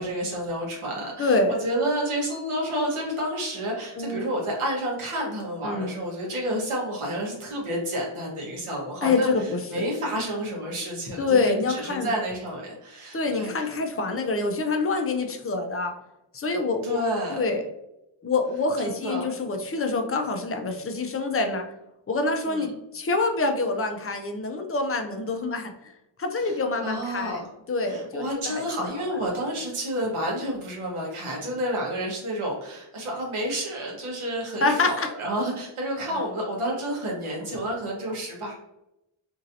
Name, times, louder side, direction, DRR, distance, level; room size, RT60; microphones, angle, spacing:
voice 1, 0.0-13.7 16.8-17.4 18.8-19.3 22.4-22.7 26.4-27.5 27.8-38.5, equal, 85° right, -2 dB, 1.2 m, -30 dB
voice 2, 1.2-1.6 4.0-4.3 5.6-5.9 9.0-9.9 11.2-12.1 13.1-15.9 16.3-17.0 17.3-17.7 18.2-21.7 22.1-25.9 26.2-27.4 27.7-28.6 34.6-35.1 36.0-36.2, left 3 dB, 30° left, 5 dB, 0.3 m, -26 dB
3.0 x 2.7 x 2.6 m, 0.87 s
wide cardioid pair, 130°, 49 cm